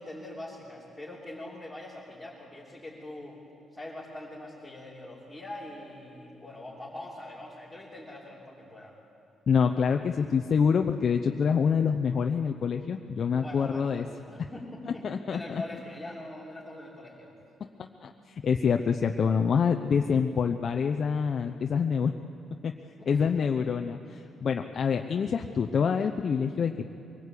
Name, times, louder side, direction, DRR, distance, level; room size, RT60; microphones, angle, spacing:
voice 1, 0.0-3.4 3.7-9.0 13.4-17.3 23.0-23.4, left 1 dB, ahead, -8 dB, 3.5 m, -43 dB
voice 2, 9.5-14.1 15.0-15.6 17.8-22.1 22.6-22.7 23.1-26.8, left 6 dB, 45° left, 5 dB, 0.7 m, -26 dB
23.5 x 18.5 x 8.4 m, 2.8 s
cardioid pair, 150°, 0 cm